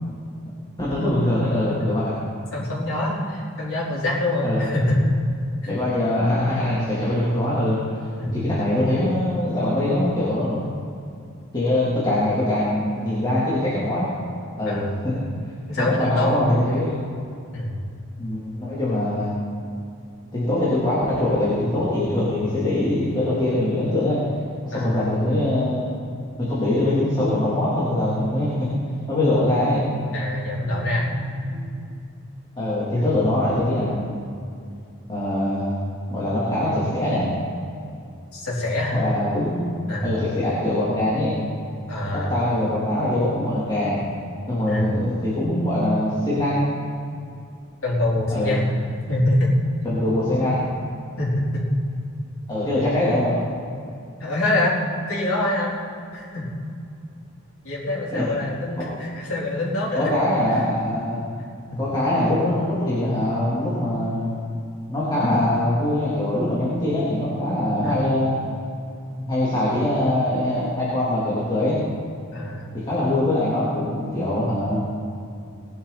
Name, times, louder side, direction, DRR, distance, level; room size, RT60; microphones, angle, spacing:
voice 1, 0.8-2.1 4.4-4.7 5.7-7.8 8.3-10.7 11.5-14.1 14.6-15.1 15.8-17.0 18.2-19.3 20.3-24.2 24.6-25.9 26.4-28.7 29.1-29.8 32.5-34.2 35.1-35.7 36.1-37.3 38.9-39.7 40.0-41.3 42.1-44.0 44.5-46.7 48.3-48.6 49.8-50.6 52.5-53.4 57.8-58.3 58.8-58.9 59.9-61.2 61.7-64.3 64.9-68.4 69.1-71.8 72.7-74.8, left 1 dB, 20° left, -9 dB, 3.5 m, -23 dB
voice 2, 2.5-5.2 5.6-5.7 8.2-8.4 14.7-14.9 15.7-16.5 17.5-17.7 24.7-25.0 30.1-31.1 32.9-33.0 38.3-39.0 39.9-40.1 41.9-42.3 44.7-44.9 47.8-48.8 49.1-49.5 51.2-51.6 54.2-55.7 56.1-56.5 57.6-60.1 60.5-60.6 61.7-61.8 65.2-65.3 67.8-68.1 72.3-72.7, left 1 dB, 85° left, -6 dB, 4.3 m, -25 dB
sound 1, 26.4-32.0, equal, 55° right, 1.3 m, -32 dB
20.5 x 11.5 x 4.3 m, 2.5 s
head